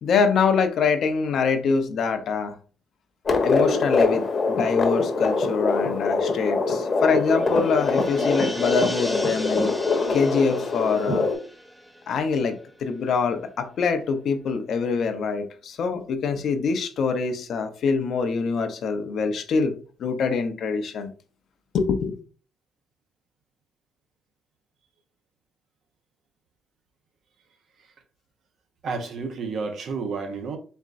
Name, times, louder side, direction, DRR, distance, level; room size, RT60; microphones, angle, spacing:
voice 1, 0.0-2.6 3.4-9.7 10.1-11.3 12.1-21.1 21.7-22.2, left 5 dB, 65° left, 0.7 m, -24 dB
sound 1, 3.3-11.4, left 4 dB, 40° left, 1.0 m, -23 dB
sound 2, 6.4-12.8 13.1-13.2, equal, 10° right, 0.7 m, -37 dB
voice 2, 28.8-30.6, right 4 dB, 65° right, 0.9 m, -30 dB
4.3 x 3.5 x 2.5 m
cardioid pair, 90°, 0 cm